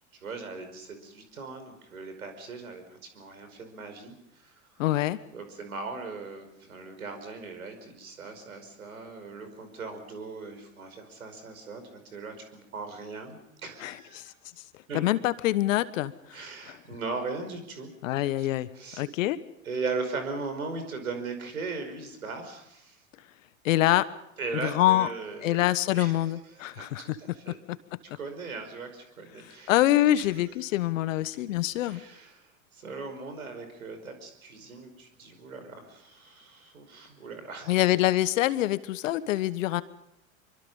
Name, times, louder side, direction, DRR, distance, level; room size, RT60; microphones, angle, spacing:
voice 1, 0.1-4.8 5.3-14.3 14.9-15.0 16.3-17.9 18.4-18.5 18.7-19.1 19.6-23.0 24.4-25.6 25.9-26.2 26.5-27.6 28.2-29.7 30.2-30.3 31.9-37.8, right 4 dB, 85° right, 7 dB, 5.3 m, -39 dB
voice 2, 4.8-5.2 13.8-14.3 14.9-16.4 16.7-16.8 18.0-18.7 19.0-19.4 23.6-24.1 24.6-25.1 25.4-27.2 27.5-27.8 29.7-32.0 37.7-39.8, left 15 dB, 65° left, 15 dB, 1.4 m, -25 dB
26.0 x 24.0 x 5.6 m, 0.81 s
hypercardioid pair, 90°, 41 cm